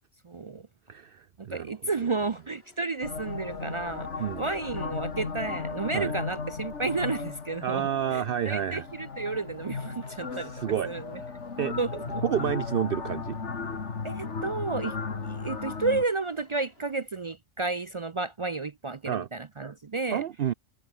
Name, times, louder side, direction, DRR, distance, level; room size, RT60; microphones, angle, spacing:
voice 1, 0.2-0.7 1.4-10.5 10.9-11.2 11.8-12.2 14.0-15.0 15.2-20.2, right 3 dB, 40° right, 0.4 m, -32 dB
voice 2, 0.9-1.7 4.2-4.5 5.9-6.1 7.6-8.8 10.3-10.9 11.6-11.8 12.2-13.4 19.1-19.3 20.1-20.5, right 9 dB, 60° right, 0.8 m, -29 dB
sound 1, 1.9-17.0, left 1 dB, 60° left, 7.7 m, -61 dB
sound 2, 3.0-16.0, left 5 dB, 90° left, 2.2 m, -36 dB
omnidirectional pair, 1.1 m